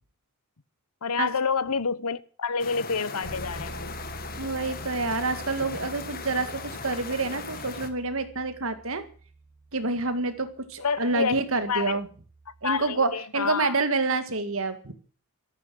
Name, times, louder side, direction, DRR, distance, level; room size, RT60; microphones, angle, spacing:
voice 1, 1.0-4.0 10.8-11.4 11.7-12.0 12.6-13.8, left 5 dB, 85° left, 1.0 m, -28 dB
sound 1, 2.6-7.9, left 4 dB, 40° left, 1.8 m, -38 dB
Bass guitar, 3.2-13.0, right 3 dB, 85° right, 4.9 m, -46 dB
voice 2, 4.3-9.0 9.7-12.1 12.6-14.9, right 3 dB, 65° right, 2.0 m, -28 dB
14.0 x 12.5 x 7.7 m
head